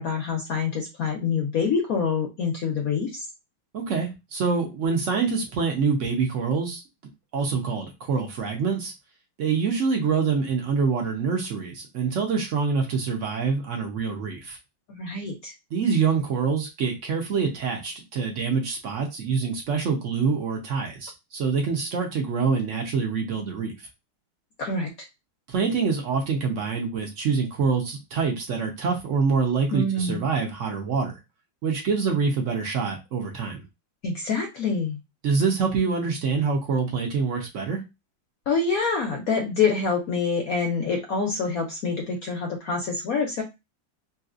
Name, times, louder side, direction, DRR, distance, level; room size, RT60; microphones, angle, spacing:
voice 1, 0.0-3.3 14.9-15.5 24.6-24.9 29.7-30.2 34.0-35.0 38.5-43.4, left 4 dB, 70° left, 2 dB, 0.9 m, -26 dB
voice 2, 3.7-6.8 7.3-8.9 9.4-14.6 15.7-23.9 25.5-31.2 31.6-33.6 35.2-37.8, right 5 dB, 70° right, 2 dB, 0.7 m, -25 dB
3.1 x 2.8 x 2.4 m, 0.23 s
omnidirectional pair, 2.1 m